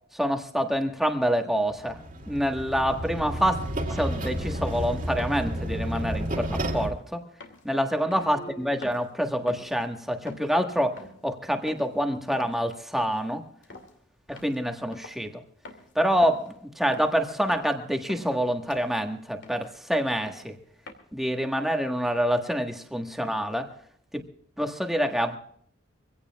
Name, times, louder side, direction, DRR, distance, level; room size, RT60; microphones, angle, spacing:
voice 1, 0.1-2.0 2.3-3.6 3.9-7.2 7.6-13.5 14.3-15.4 15.9-20.5 21.1-23.7 24.1-24.2 24.6-25.4, equal, ahead, 1.4 m, -27 dB
sound 1, 1.7-6.9, right 1 dB, 40° right, 2.2 m, -31 dB
sound 2, 5.2-5.4 6.0-6.2 6.6-6.9 7.4-8.6 8.8-9.1 9.5-9.8 10.3-10.6 11.0-11.2 11.7-12.0 12.3-12.6 13.0-13.3 13.6-13.9 14.4-14.6 14.9-15.2 15.7-15.9 16.2-16.5 16.9-17.2 17.5-17.8 18.1-18.4 18.7-19.0 19.4-19.7 20.2-20.5 20.9-21.0, left 2 dB, 60° left, 2.5 m, -45 dB
sound 3, 8.2-9.2, right 2 dB, 90° left, 2.7 m, -45 dB
24.5 x 16.5 x 2.4 m
head